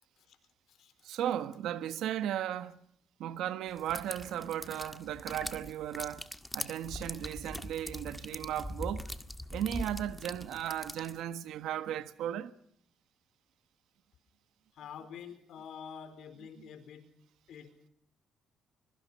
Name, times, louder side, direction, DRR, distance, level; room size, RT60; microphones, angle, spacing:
voice 1, 1.0-2.8 3.2-6.3 6.5-9.1 9.5-12.5, right 11 dB, 85° right, 1.4 m, -36 dB
sound 1, 3.8-11.2, left 1 dB, 10° left, 1.7 m, -42 dB
voice 2, 14.7-17.1 17.5-17.9, left 7 dB, 75° left, 4.3 m, -47 dB
24.5 x 22.5 x 5.6 m
cardioid pair, 90°, 0 cm